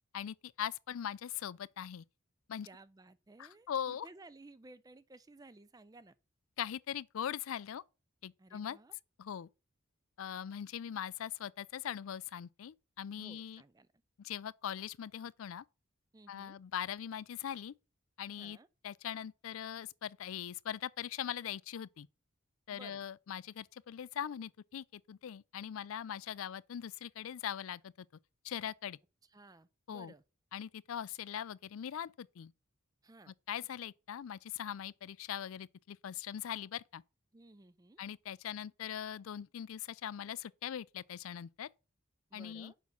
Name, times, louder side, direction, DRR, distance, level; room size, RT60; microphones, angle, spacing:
voice 1, 0.1-2.0 2.5-2.7 3.4-4.1 6.6-7.8 8.2-8.8 9.2-9.5 10.2-13.6 14.2-15.6 16.3-17.7 18.2-18.6 18.8-22.1 22.7-28.1 28.4-29.0 29.9-30.1 30.5-32.5 33.3-37.0 38.0-41.7 42.3-42.7, left 9 dB, 75° left, 0.4 m, -41 dB
voice 2, 2.6-6.1 8.4-8.9 13.2-13.9 16.1-16.6 18.4-18.7 22.7-23.0 29.3-30.2 33.0-33.3 37.3-38.0 42.3-42.8, right 2 dB, 15° right, 0.4 m, -57 dB
7.1 x 5.5 x 5.8 m
head